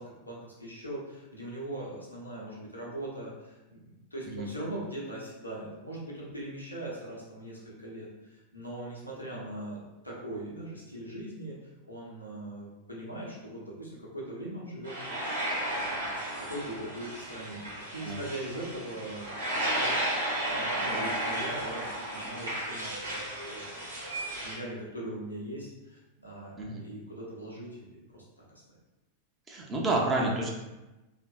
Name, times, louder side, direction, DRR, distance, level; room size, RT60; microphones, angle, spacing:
voice 1, 0.0-11.5 11.8-15.3 15.7-16.1 16.5-17.6 17.9-19.3 19.5-23.9 24.4-28.2, right 1 dB, 90° left, -6 dB, 0.8 m, -41 dB
sound 1, 14.8-24.6, right 1 dB, 75° right, 0.9 m, -33 dB
voice 2, 29.5-30.5, right 2 dB, 20° right, -1 dB, 0.5 m, -29 dB
2.9 x 2.5 x 2.3 m, 1.0 s
figure-of-eight pair, 90°, 0 cm